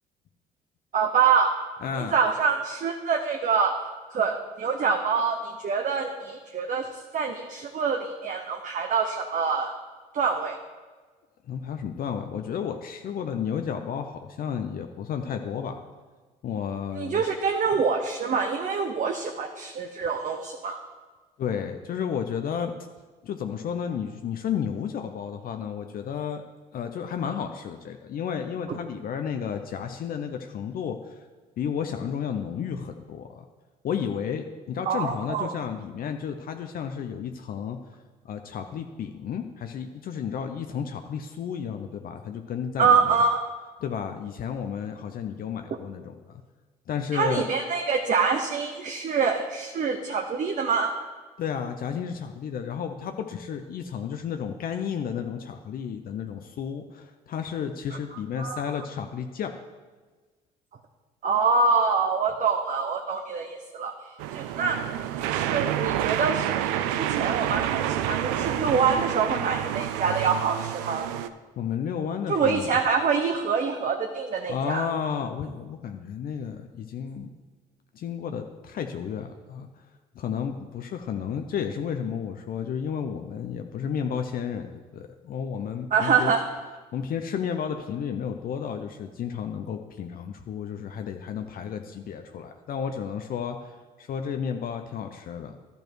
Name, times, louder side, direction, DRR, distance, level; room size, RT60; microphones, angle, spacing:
voice 1, 0.9-1.5 2.0-3.7 4.1-6.9 7.1-9.7 10.1-10.6 16.9-20.8 34.9-35.5 42.8-43.4 47.1-50.9 58.4-58.8 61.2-63.9 64.3-64.8 65.2-71.1 72.3-74.9 85.9-86.4, right 5 dB, 45° right, 4 dB, 0.9 m, -25 dB
voice 2, 1.8-2.1 11.5-15.8 16.4-17.3 17.7-17.8 21.4-22.7 23.2-26.4 26.7-31.2 31.6-33.4 33.8-37.8 38.2-43.2 43.8-46.4 46.9-47.5 51.4-59.5 71.6-72.7 74.5-77.3 77.9-79.7 80.1-86.3 86.9-95.6, left 7 dB, 50° left, 6 dB, 0.7 m, -32 dB
sound 1, 64.2-71.3, right 11 dB, 80° right, 0.5 m, -28 dB
12.0 x 5.3 x 4.6 m, 1.4 s
hypercardioid pair, 65°, 19 cm